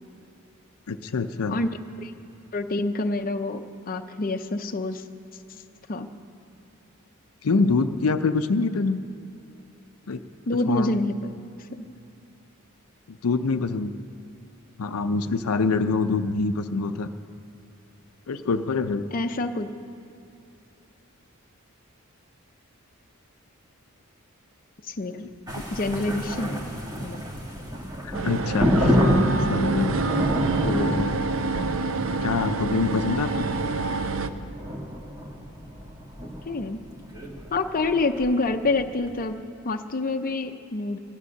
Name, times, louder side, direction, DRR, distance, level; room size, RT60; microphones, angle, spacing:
voice 1, 0.9-1.6 7.4-9.0 10.1-10.2 10.7-10.9 13.1-13.9 14.8-17.1 18.3-19.0 28.0-29.0 29.3-29.9 30.6-31.1 32.2-33.5, left 4 dB, 85° left, 9 dB, 0.5 m, -25 dB
voice 2, 2.5-3.6 3.9-5.0 5.9-6.1 10.5-11.3 11.7-11.9 19.1-19.7 24.8-25.2 25.7-26.7 27.0-27.2 36.5-36.8 37.5-39.4 39.6-41.0, left 2 dB, 40° left, 6 dB, 0.6 m, -27 dB
sound 1, 25.5-39.2, equal, 20° right, 1.4 m, -28 dB
sound 2, 28.1-34.3, right 4 dB, 65° right, 0.6 m, -28 dB
15.5 x 11.0 x 6.5 m, 2.8 s
head